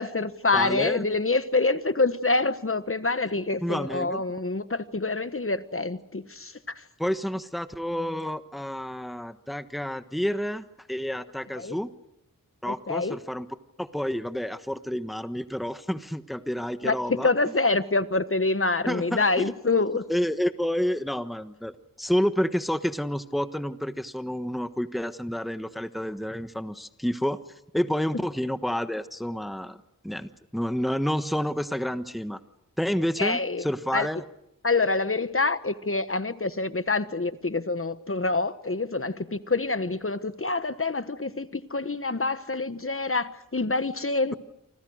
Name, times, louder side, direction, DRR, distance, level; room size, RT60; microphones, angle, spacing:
voice 1, 0.0-6.8 11.5-11.8 12.7-13.2 16.8-20.0 33.2-33.6 33.9-34.1 34.6-44.3, left 3 dB, 40° left, 1.3 m, -26 dB
voice 2, 0.5-1.1 3.6-4.2 7.0-11.9 12.6-13.5 13.8-17.3 18.9-19.5 20.1-27.4 27.7-29.8 30.0-32.4 32.8-34.2, equal, ahead, 1.3 m, -29 dB
29.0 x 25.0 x 6.4 m
wide cardioid pair, 45°, 33 cm